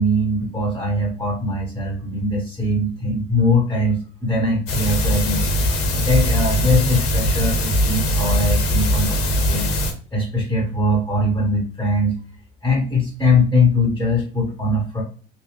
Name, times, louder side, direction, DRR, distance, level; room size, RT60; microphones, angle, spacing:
voice 1, 0.0-5.4 5.9-9.7 10.1-12.1 12.6-15.0, left 1 dB, 10° left, -1 dB, 1.3 m, -21 dB
sound 1, 4.7-9.9, equal, 60° left, 1.4 m, -20 dB
3.3 x 2.6 x 3.0 m, 0.39 s
hypercardioid pair, 65°, 29 cm